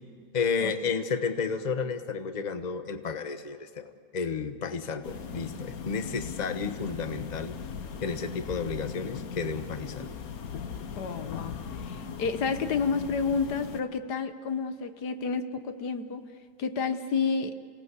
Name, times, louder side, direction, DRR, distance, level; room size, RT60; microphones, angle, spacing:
voice 1, 0.3-7.6 8.0-10.2, left 5 dB, 30° left, 9 dB, 1.1 m, -32 dB
sound 1, 5.0-13.8, left 6 dB, 65° left, 1.5 m, -39 dB
voice 2, 11.0-16.2 16.6-17.5, left 5 dB, 80° left, 9 dB, 1.7 m, -30 dB
28.5 x 18.0 x 8.2 m, 2.3 s
omnidirectional pair, 1.7 m